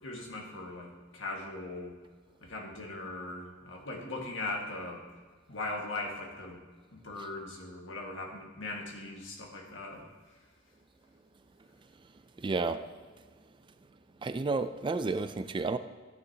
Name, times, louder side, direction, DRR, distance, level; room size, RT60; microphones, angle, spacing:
voice 1, 0.0-1.9 2.4-5.0 5.5-6.6 6.9-10.1, left 2 dB, 75° left, 0 dB, 1.8 m, -39 dB
voice 2, 12.4-12.8 14.2-15.8, right 3 dB, 25° right, 10 dB, 0.3 m, -31 dB
13.5 x 9.5 x 2.8 m, 1.5 s
head